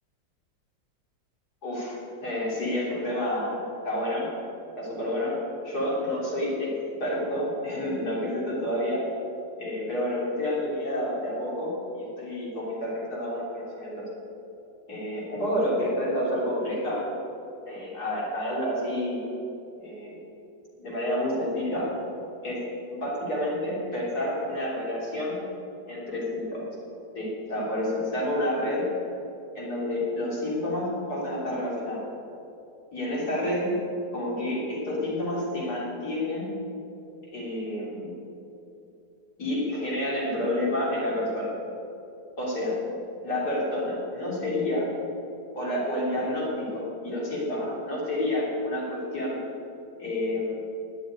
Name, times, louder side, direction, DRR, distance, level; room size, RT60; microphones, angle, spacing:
voice 1, 1.6-3.6 3.8-4.3 4.8-5.4 5.6-6.7 7.0-9.1 9.6-14.1 14.9-17.1 17.7-19.2 19.8-20.2 20.8-22.0 22.4-22.6 22.9-25.4 25.9-26.7 27.1-28.9 29.6-32.0 32.9-33.8 34.1-36.5 37.3-38.1 39.4-41.5 42.4-42.8 43.2-44.9 45.5-49.4 50.0-50.6, left 1 dB, 60° left, -4 dB, 3.9 m, -29 dB
12.0 x 8.0 x 9.7 m, 2.8 s
omnidirectional pair, 1.9 m